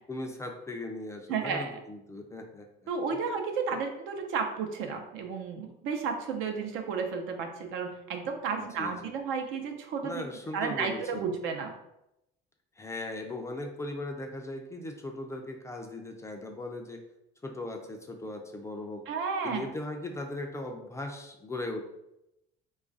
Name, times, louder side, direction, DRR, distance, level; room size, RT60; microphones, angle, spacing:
voice 1, 0.1-2.7 3.7-3.8 8.6-9.1 10.0-11.3 12.8-17.0 17.4-19.1 19.4-21.8, left 2 dB, 15° left, 3 dB, 0.3 m, -38 dB
voice 2, 1.3-1.7 2.9-10.2 10.5-11.7 19.1-19.7, right 5 dB, 75° right, 4 dB, 0.6 m, -32 dB
3.2 x 2.4 x 3.8 m, 0.87 s
cardioid pair, 130°, 20 cm